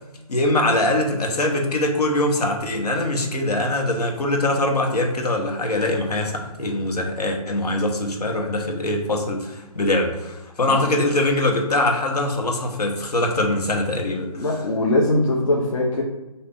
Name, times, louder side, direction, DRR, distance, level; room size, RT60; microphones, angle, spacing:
voice 1, 0.3-14.5, left 1 dB, 85° left, 2 dB, 1.2 m, -22 dB
voice 2, 14.3-16.0, left 2 dB, 55° left, -2 dB, 0.8 m, -21 dB
4.9 x 2.8 x 3.6 m, 1.1 s
hypercardioid pair, 165°, 20 cm